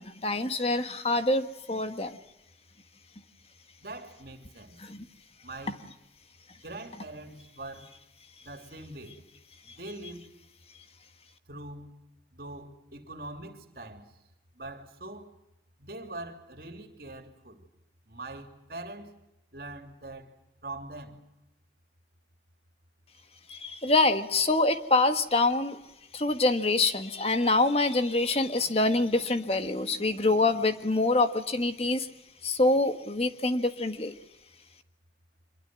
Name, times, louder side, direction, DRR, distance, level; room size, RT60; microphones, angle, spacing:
voice 1, 0.0-2.2 4.8-5.0 23.5-25.8 26.1-32.1 32.4-34.1, left 2 dB, 35° left, 1.7 m, -25 dB
voice 2, 3.8-4.8 5.4-5.8 6.6-7.9 8.4-9.2 9.8-10.3 11.5-11.9 12.3-14.0 14.5-15.3 15.8-17.6 18.1-19.1 19.5-20.3 20.6-21.2, right 2 dB, 55° right, 3.1 m, -42 dB
25.5 x 22.0 x 7.7 m
head